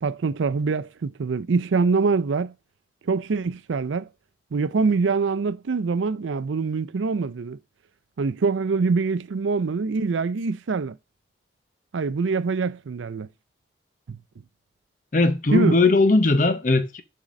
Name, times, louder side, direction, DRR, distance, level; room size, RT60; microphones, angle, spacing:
voice 1, 0.0-2.5 3.1-4.1 4.5-7.6 8.2-10.9 11.9-13.3 14.1-14.2 15.5-15.8, right 4 dB, 90° right, 0.5 m, -24 dB
voice 2, 15.1-17.0, left 3 dB, 45° left, 0.7 m, -19 dB
7.3 x 3.8 x 5.1 m
head